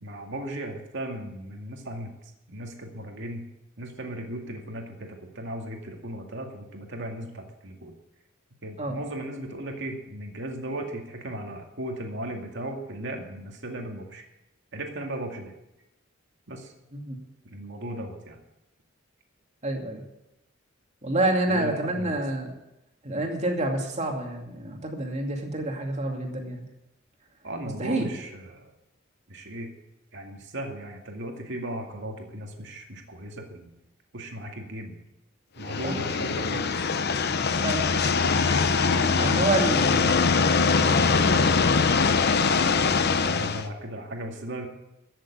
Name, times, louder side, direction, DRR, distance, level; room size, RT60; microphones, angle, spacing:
voice 1, 0.0-2.1 2.5-3.4 3.8-7.9 8.6-14.2 14.7-15.5 16.5-16.7 17.5-18.4 21.5-22.1 27.4-28.7 29.3-29.7 30.1-33.7 34.1-34.9 35.6-36.7 38.3-38.6 39.1-40.5 40.8-41.7 42.8-44.7, right 1 dB, 60° right, 2 dB, 2.2 m, -36 dB
voice 2, 19.6-20.0 21.0-22.5 23.0-26.6 27.8-28.1 35.8-35.9 37.6-37.9 39.2-39.8, right 2 dB, 35° right, 2 dB, 2.5 m, -28 dB
sound 1, 35.6-43.7, left 5 dB, 50° left, 0.8 m, -22 dB
15.0 x 7.4 x 8.8 m, 0.89 s
head